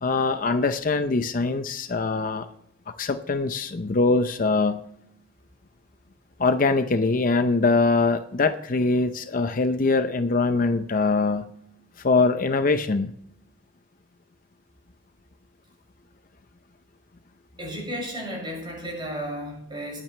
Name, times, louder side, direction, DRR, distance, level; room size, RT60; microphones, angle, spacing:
voice 1, 0.0-2.5 3.0-4.8 6.4-11.5 12.0-13.1, left 3 dB, 45° left, 9 dB, 0.6 m, -23 dB
voice 2, 17.6-20.0, equal, 25° right, -2 dB, 6.2 m, -33 dB
20.5 x 8.9 x 3.2 m, 0.71 s
head